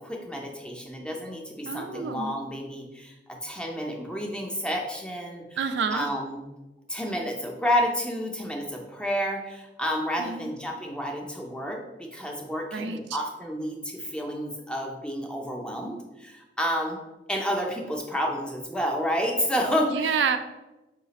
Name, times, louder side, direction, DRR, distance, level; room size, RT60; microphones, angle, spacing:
voice 1, 0.0-5.4 5.9-6.4 6.9-17.0 17.3-20.2, equal, 5° left, 1 dB, 0.5 m, -30 dB
voice 2, 1.7-2.4 5.6-6.1 10.2-10.5 12.7-13.0 19.9-20.4, right 6 dB, 75° right, 8 dB, 0.3 m, -28 dB
4.8 x 2.4 x 4.0 m, 1.0 s
head